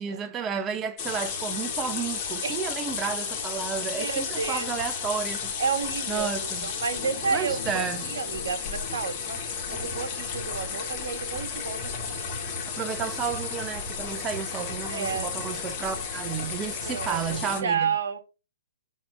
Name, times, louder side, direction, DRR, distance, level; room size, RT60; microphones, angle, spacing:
voice 1, 0.0-5.5 6.1-6.7 7.3-8.0 12.8-17.9, right 7 dB, 15° right, 0.6 m, -32 dB
sound 1, 1.0-17.6, left 6 dB, 25° left, 1.6 m, -33 dB
voice 2, 4.0-4.7 5.6-9.4 9.7-11.9 14.9-15.3 16.8-18.2, right 6 dB, 65° right, 1.6 m, -31 dB
6.4 x 3.5 x 5.6 m
hypercardioid pair, 145°, 0 cm